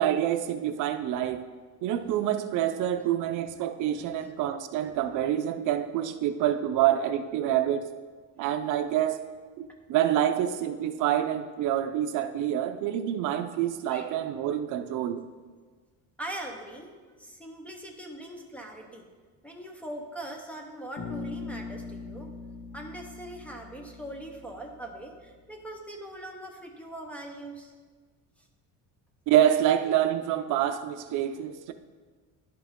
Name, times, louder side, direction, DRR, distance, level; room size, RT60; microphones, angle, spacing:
voice 1, 0.0-1.4 1.8-7.9 8.4-9.2 9.6-15.2 29.3-31.7, right 11 dB, 65° right, 9 dB, 0.5 m, -27 dB
voice 2, 4.0-4.3 13.5-13.6 13.9-14.1 16.2-16.9 17.2-19.0 19.4-22.3 22.7-27.7 28.4-28.5, right 1 dB, 5° left, 2 dB, 0.7 m, -41 dB
Bass guitar, 21.0-25.0, left 3 dB, 90° left, 2.1 m, -41 dB
10.5 x 5.7 x 3.6 m, 1.4 s
cardioid pair, 165°, 33 cm